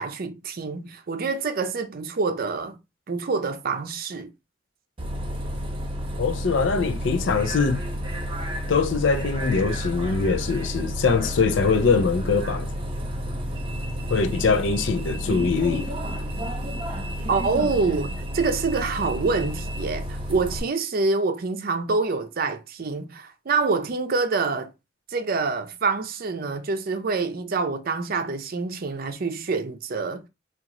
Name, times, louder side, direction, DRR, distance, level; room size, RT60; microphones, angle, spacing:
voice 1, 0.0-2.8 3.1-4.3 17.3-24.7 25.1-30.3, right 4 dB, 50° right, 0.5 m, -26 dB
Bus, 5.0-20.6, equal, 30° right, 0.9 m, -31 dB
voice 2, 6.2-7.8 8.7-12.7 14.1-15.9, left 4 dB, 75° left, 0.4 m, -22 dB
2.9 x 2.5 x 3.7 m
head